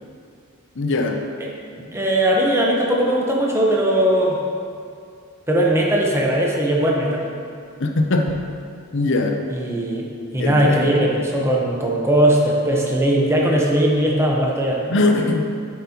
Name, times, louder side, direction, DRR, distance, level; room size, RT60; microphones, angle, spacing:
voice 1, 0.8-1.2 7.8-8.4 8.9-9.3 10.4-10.9 14.9-15.5, left 2 dB, 60° left, 3 dB, 0.6 m, -20 dB
voice 2, 1.4-4.4 5.5-7.3 9.5-10.1 10.3-14.8, right 1 dB, 10° right, -2 dB, 1.0 m, -19 dB
9.4 x 7.4 x 2.9 m, 2.3 s
head